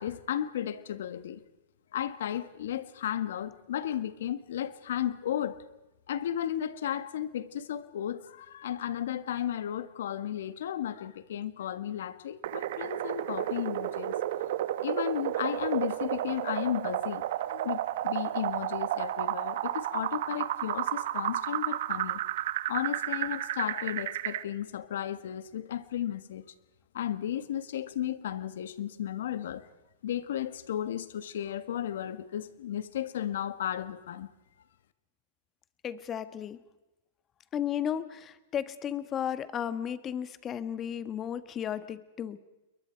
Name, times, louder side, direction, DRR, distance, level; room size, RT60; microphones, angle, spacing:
voice 1, 0.0-1.4 1.9-5.6 6.1-14.2 14.8-22.2 22.7-26.5 26.9-29.7 30.0-34.3, left 10 dB, 75° left, 13 dB, 1.6 m, -34 dB
sound 1, 12.4-24.4, right 13 dB, 65° right, 1.1 m, -32 dB
voice 2, 35.8-36.6 37.5-42.4, left 9 dB, 25° left, 13 dB, 1.4 m, -34 dB
29.0 x 22.5 x 4.6 m, 1.0 s
hypercardioid pair, 125°, 0 cm